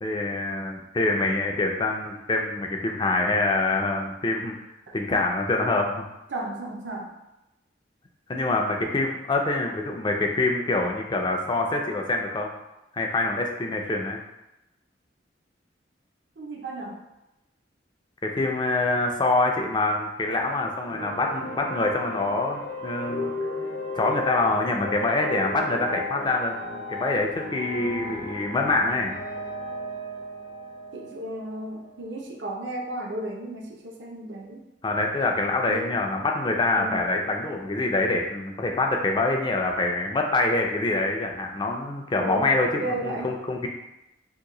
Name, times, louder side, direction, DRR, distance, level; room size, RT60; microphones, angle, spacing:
voice 1, 0.0-4.6 4.9-6.0 8.3-12.5 12.9-14.2 18.2-23.3 23.9-29.1 34.8-43.7, left 2 dB, 25° left, 2 dB, 0.4 m, -25 dB
voice 2, 6.3-7.1 16.4-17.0 30.9-34.6 35.7-35.9 36.7-37.1 42.2-43.3, right 1 dB, 70° right, 0 dB, 0.6 m, -34 dB
sound 1, 20.8-32.1, left 1 dB, 65° left, 0.8 m, -35 dB
2.9 x 2.6 x 3.7 m, 0.92 s
head